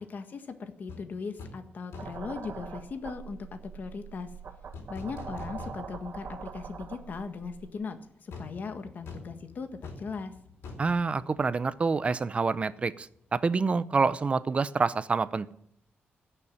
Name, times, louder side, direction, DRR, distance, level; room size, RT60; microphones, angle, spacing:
voice 1, 0.0-4.3 4.9-10.3, left 5 dB, 45° left, 8 dB, 1.6 m, -39 dB
sound 1, 0.9-1.1 1.4-1.7 1.9-2.3 4.7-6.2 6.5-6.6 8.3-12.0 12.2-12.4, left 3 dB, 85° left, 3.8 m, -45 dB
sound 2, 2.0-7.7, right 6 dB, 60° right, 1.4 m, -43 dB
voice 2, 10.8-15.5, right 4 dB, 30° right, 16 dB, 0.6 m, -27 dB
15.5 x 6.9 x 9.9 m, 0.72 s
wide cardioid pair, 140°, 4 cm